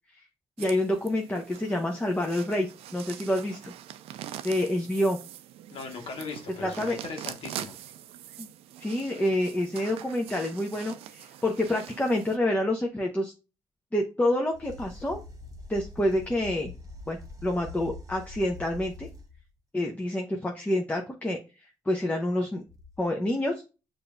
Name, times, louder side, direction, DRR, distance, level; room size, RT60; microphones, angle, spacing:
voice 1, 0.6-2.7 2.9-3.7 4.4-5.2 6.6-7.0 8.4-8.5 8.8-13.3 13.9-15.2 15.7-16.7 17.1-19.1 19.7-21.4 21.9-22.6 23.0-23.6, left 1 dB, 15° left, 1 dB, 0.8 m, -27 dB
sound 1, 0.6-12.4, right 11 dB, 85° right, 0.4 m, -43 dB
voice 2, 5.7-7.7, left 4 dB, 70° left, 3 dB, 1.1 m, -39 dB
sound 2, 14.5-19.5 22.7-23.0, left 3 dB, 35° right, 1.0 m, -44 dB
6.5 x 2.7 x 2.3 m, 0.30 s
cardioid pair, 70°, 10 cm